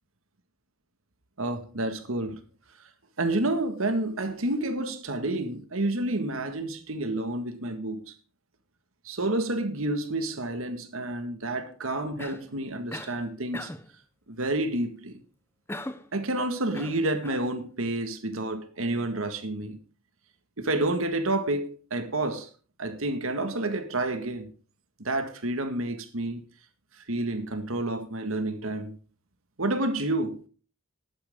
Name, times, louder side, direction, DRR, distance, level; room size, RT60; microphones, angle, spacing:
voice 1, 1.4-2.4 3.2-8.1 9.1-13.7 14.3-15.2 16.1-19.8 20.6-22.5 22.8-24.5 25.0-26.4 27.1-29.0 29.6-30.4, right 2 dB, 80° right, 1.8 m, -29 dB
Cough, 12.2-12.5 12.9-13.2 13.5-13.9 15.7-16.1 16.7-17.5, left 1 dB, 10° left, 0.8 m, -39 dB
14.0 x 11.5 x 3.7 m
head